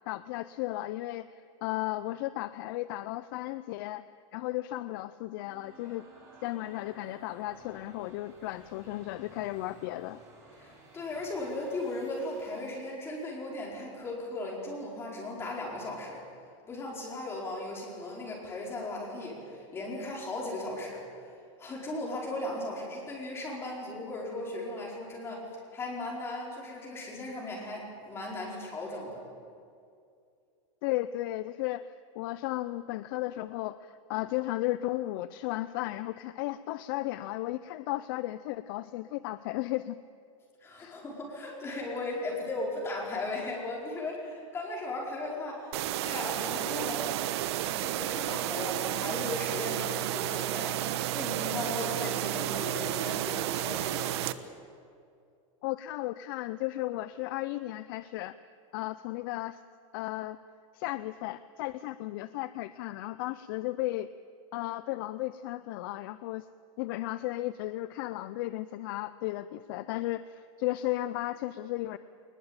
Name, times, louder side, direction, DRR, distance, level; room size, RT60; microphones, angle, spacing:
voice 1, 0.1-4.0 4.3-6.1 6.4-10.2 30.8-31.8 32.2-40.0 40.8-41.0 55.6-58.4 58.7-59.6 59.9-60.4 60.7-64.1 64.5-66.5 66.8-72.0, left 16 dB, 45° left, 14 dB, 0.5 m, -34 dB
sound 1, 5.2-12.9, right 2 dB, 20° right, 5.5 m, -55 dB
voice 2, 10.6-16.2 16.7-21.0 21.6-29.2 40.6-47.1 47.6-50.8 51.1-54.3, left 2 dB, 15° left, -2 dB, 4.8 m, -37 dB
sound 2, 45.7-54.3, right 13 dB, 55° right, 1.0 m, -32 dB
21.5 x 20.5 x 8.9 m, 2.4 s
supercardioid pair, 175°, 16 cm